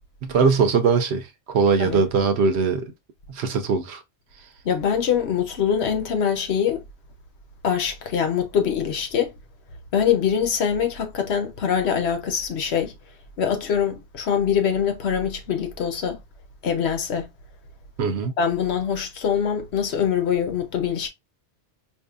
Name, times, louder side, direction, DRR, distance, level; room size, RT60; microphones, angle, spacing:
voice 1, 0.2-2.8 3.3-4.0 18.0-18.3, right 5 dB, 75° right, 0.9 m, -21 dB
voice 2, 4.6-6.8 7.6-9.3 9.9-12.9 13.4-16.2 16.6-17.3 18.4-21.1, left 8 dB, 75° left, 1.0 m, -23 dB
4.4 x 2.7 x 2.3 m
omnidirectional pair, 1.1 m